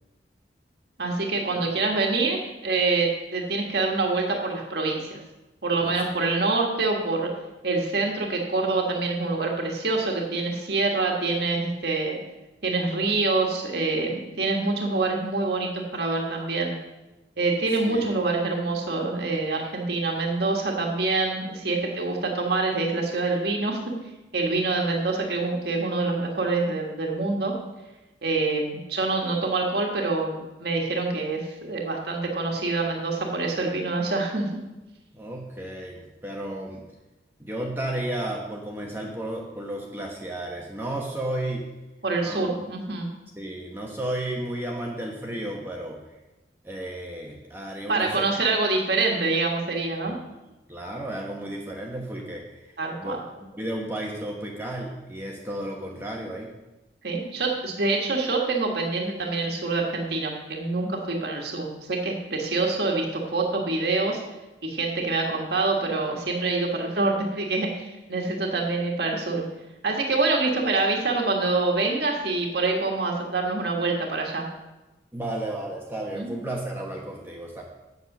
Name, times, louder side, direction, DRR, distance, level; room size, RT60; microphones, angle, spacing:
voice 1, 1.0-2.4 2.6-5.2 5.6-7.3 7.6-12.2 12.6-16.7 17.4-23.8 24.3-27.5 28.2-34.5 42.0-43.1 47.9-50.2 52.8-53.2 57.0-64.2 64.6-69.4 69.8-74.4 76.1-76.4, right 3 dB, 60° right, 0 dB, 1.5 m, -26 dB
voice 2, 17.7-18.1 35.1-36.8 37.4-41.6 42.2-42.5 43.4-46.0 46.6-48.3 50.0-50.1 50.7-52.4 53.0-53.2 53.5-56.5 75.1-77.6, right 1 dB, 10° right, -1 dB, 1.0 m, -33 dB
8.1 x 7.9 x 6.0 m, 1.1 s
head